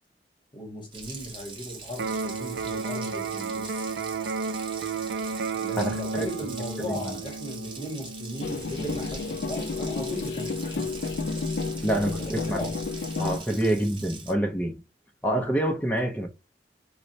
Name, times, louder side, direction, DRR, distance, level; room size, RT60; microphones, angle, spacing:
voice 1, 0.5-3.9 5.5-10.9 12.1-12.8 15.3-15.5, equal, 30° left, 1.1 m, -37 dB
Water tap faucet, 0.9-14.3, right 4 dB, 30° right, 0.7 m, -43 dB
Electric guitar, 1.9-9.9, right 4 dB, 80° right, 0.3 m, -33 dB
voice 2, 5.8-6.3 6.8-7.2 11.8-12.7 13.2-14.8 15.2-16.3, right 1 dB, 10° left, 0.5 m, -27 dB
sound 1, 8.4-13.4, left 4 dB, 70° left, 0.4 m, -31 dB
4.2 x 2.1 x 2.6 m
head